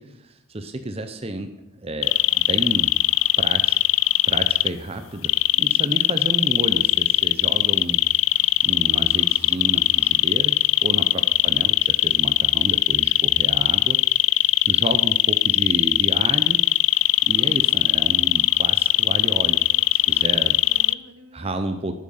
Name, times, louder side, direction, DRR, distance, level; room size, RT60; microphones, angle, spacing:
voice 1, 0.0-1.5 1.8-2.9 3.4-3.8 4.3-5.3 5.6-8.0 8.6-14.0 14.7-16.6 17.2-19.6 20.1-20.6 21.3-21.9, right 1 dB, 25° right, 8 dB, 0.8 m, -30 dB
sound 1, 2.0-4.7 5.2-20.9, left 17 dB, 65° left, 0.3 m, -19 dB
voice 2, 5.5-6.0 10.9-11.4 19.6-20.4 20.6-21.7, equal, 90° right, 6 dB, 1.8 m, -47 dB
13.0 x 8.6 x 5.6 m, 0.83 s
head